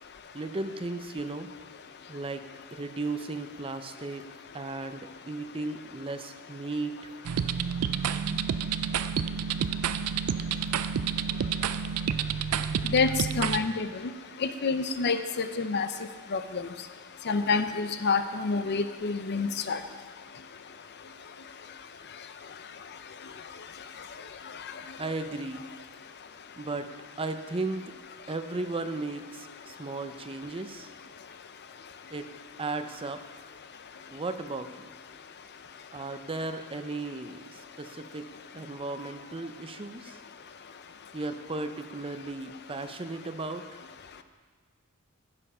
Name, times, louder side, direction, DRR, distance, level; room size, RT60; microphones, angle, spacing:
voice 1, 0.3-1.5 2.1-2.4 2.7-4.3 4.5-7.1 25.0-25.6 26.6-26.9 27.2-27.9 28.3-30.9 32.1-32.3 32.6-33.4 34.1-34.9 35.9-38.3 38.5-40.2 41.1-43.8, right 3 dB, 25° right, 9 dB, 0.6 m, -35 dB
sound 1, 7.2-13.6, right 7 dB, 85° right, 0.4 m, -29 dB
voice 2, 13.4-13.9 14.4-15.9 16.3-16.6 17.3-19.8, left 4 dB, 50° left, 10 dB, 0.6 m, -27 dB
15.0 x 6.9 x 5.5 m, 1.5 s
head